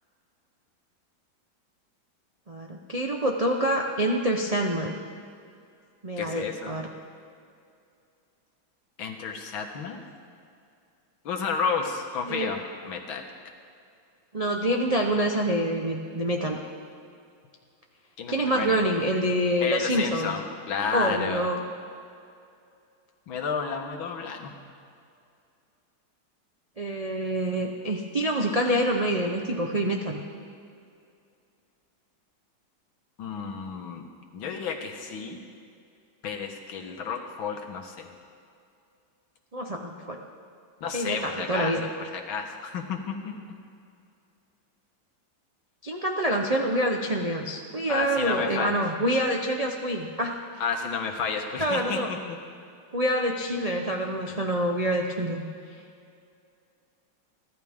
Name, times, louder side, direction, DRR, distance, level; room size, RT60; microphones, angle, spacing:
voice 1, 2.5-5.0 6.0-6.9 12.3-12.5 14.3-16.6 18.3-20.3 20.9-21.6 26.8-30.2 39.5-40.2 40.9-41.8 45.8-50.4 51.6-52.1 52.9-55.4, right 1 dB, 80° right, 0 dB, 0.3 m, -26 dB
voice 2, 6.2-6.8 9.0-10.0 11.3-13.2 18.2-18.8 19.6-21.5 23.3-24.5 33.2-34.0 34.3-35.4 36.2-38.1 40.8-43.3 47.9-48.8 50.6-52.2 54.3-54.4, left 5 dB, 70° left, 4 dB, 2.0 m, -31 dB
29.5 x 12.0 x 3.6 m, 2.4 s
omnidirectional pair, 2.3 m